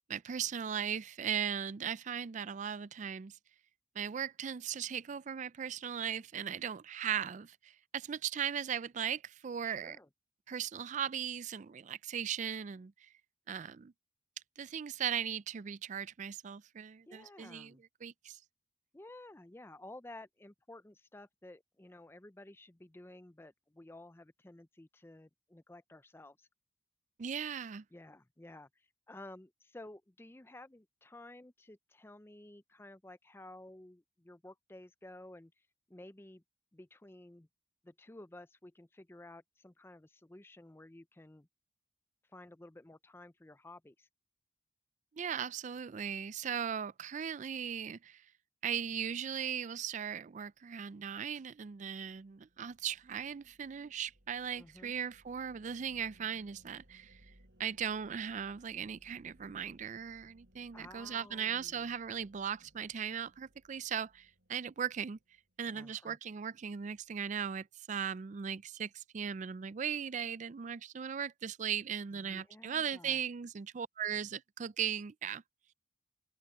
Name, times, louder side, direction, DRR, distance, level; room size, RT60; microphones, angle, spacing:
voice 1, 0.1-3.4 4.0-10.0 10.5-12.9 13.5-13.9 14.6-17.8 18.0-18.4 27.2-27.8 45.2-48.2 48.6-57.2 57.6-65.2 65.6-75.4, right 8 dB, 40° right, 0.4 m, -38 dB
voice 2, 9.6-10.1 17.1-17.8 18.9-26.5 27.9-35.5 35.9-36.4 36.7-37.5 37.8-41.5 42.3-44.1 54.6-54.9 60.7-61.9 65.7-66.2 72.1-73.2, left 1 dB, 10° left, 0.5 m, -53 dB
sound 1, 51.2-65.6, equal, 70° right, 3.9 m, -66 dB
open air
head